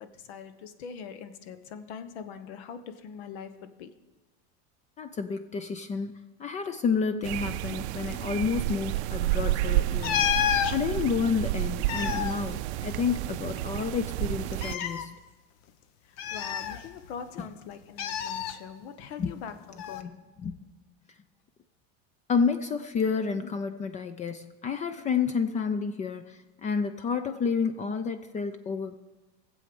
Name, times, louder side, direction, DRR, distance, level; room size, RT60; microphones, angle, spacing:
voice 1, 0.0-3.9 16.0-20.2, left 7 dB, 70° left, 11 dB, 1.2 m, -42 dB
voice 2, 5.0-6.1 6.4-10.3 10.7-15.2 19.2-19.3 20.0-20.1 20.4-20.6 22.3-29.0, left 5 dB, 20° left, 10 dB, 0.5 m, -30 dB
sound 1, 7.2-14.8, right 17 dB, 80° right, 0.5 m, -30 dB
sound 2, 10.0-10.8 11.7-13.3 13.6-13.7 14.5-15.0 16.2-17.2 18.0-18.5 19.8-20.0, left 9 dB, 50° left, 0.9 m, -29 dB
18.5 x 7.7 x 5.3 m, 1.2 s
supercardioid pair, 135°, 33 cm